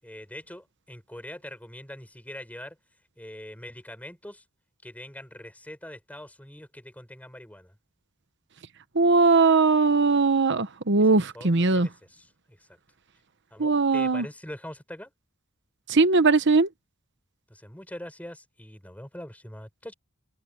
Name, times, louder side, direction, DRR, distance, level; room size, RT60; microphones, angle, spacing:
voice 1, 0.0-2.8 3.2-4.4 4.8-7.8 11.0-11.1 11.3-12.8 13.5-15.1 17.5-19.9, left 1 dB, 5° left, 7.3 m, -43 dB
voice 2, 8.9-11.9 13.6-14.3 15.9-16.7, right 3 dB, 55° right, 1.1 m, -20 dB
head